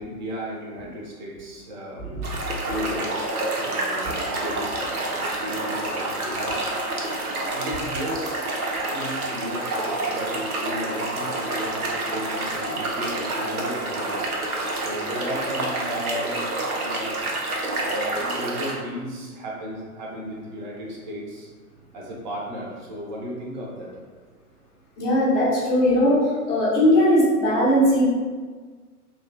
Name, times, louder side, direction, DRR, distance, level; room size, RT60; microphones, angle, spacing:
voice 1, 0.0-2.1 2.6-6.7 7.0-8.5 8.9-14.2 14.8-17.1 17.8-21.5 21.9-24.0, equal, 30° right, -3 dB, 0.6 m, -34 dB
sound 1, 2.2-18.7, right 2 dB, 70° right, 0.7 m, -28 dB
voice 2, 25.0-28.1, equal, 15° left, -9 dB, 0.5 m, -19 dB
2.7 x 2.2 x 2.6 m, 1.5 s
figure-of-eight pair, 110°, 45 cm